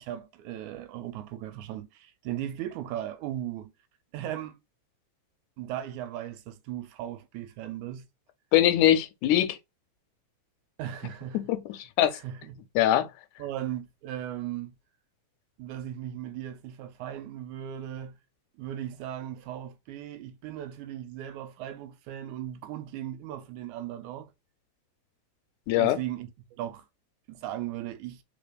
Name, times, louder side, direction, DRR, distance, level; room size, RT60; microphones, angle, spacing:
voice 1, 0.0-3.7 4.1-4.6 5.6-8.1 10.8-11.5 12.1-12.6 13.4-14.8 15.6-18.2 18.6-24.3 25.8-26.3 26.6-26.8 27.3-28.2, right 11 dB, 90° right, 2.0 m, -37 dB
voice 2, 8.5-9.6 11.3-11.6 12.0-12.2 12.8-13.1 25.7-26.0, left 12 dB, 90° left, 2.1 m, -22 dB
4.3 x 3.5 x 2.2 m
omnidirectional pair, 3.4 m